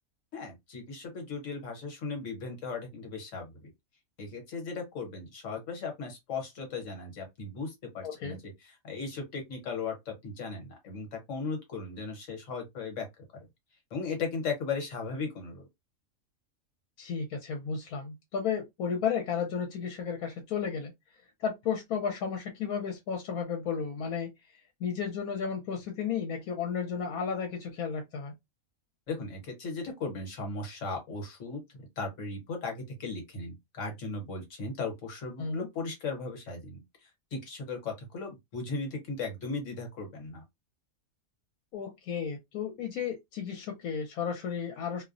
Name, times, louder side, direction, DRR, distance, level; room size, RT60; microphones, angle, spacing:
voice 1, 0.3-3.5 4.2-13.1 13.3-13.5 13.9-15.7 29.1-31.6 32.0-40.4, left 4 dB, 60° left, 1.2 m, -37 dB
voice 2, 8.0-8.4 17.0-20.9 21.4-24.3 24.8-28.3 35.4-35.7 41.7-45.0, left 6 dB, 80° left, 1.1 m, -33 dB
2.6 x 2.1 x 2.5 m
omnidirectional pair, 1.5 m